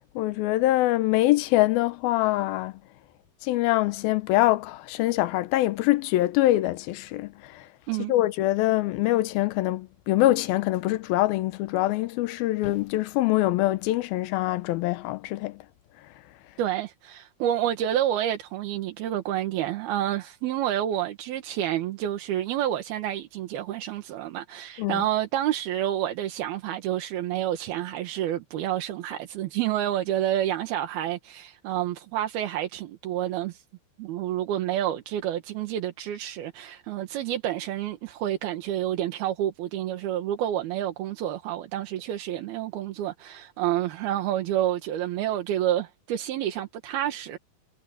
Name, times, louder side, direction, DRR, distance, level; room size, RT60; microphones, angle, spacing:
voice 1, 0.2-2.7 3.4-7.7 8.1-15.6 24.8-25.0, left 16 dB, 80° left, 2.7 m, -24 dB
voice 2, 16.6-33.6 34.0-47.4, right 12 dB, 80° right, 3.4 m, -29 dB
omnidirectional pair, 4.3 m